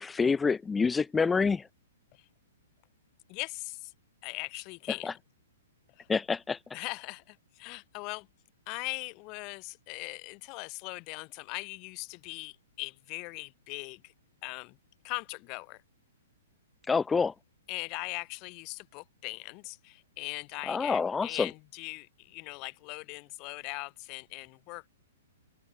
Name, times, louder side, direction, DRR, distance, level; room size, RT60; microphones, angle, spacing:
voice 1, 0.0-1.6 6.1-6.6 16.9-17.3 20.7-21.5, left 5 dB, 10° left, 0.3 m, -27 dB
voice 2, 3.3-3.9 4.2-5.1 6.0-6.1 6.7-8.3 8.7-14.1 14.4-14.8 15.0-15.8 17.7-24.9, left 29 dB, 35° left, 2.8 m, -40 dB
open air
hypercardioid pair, 150°, 0 cm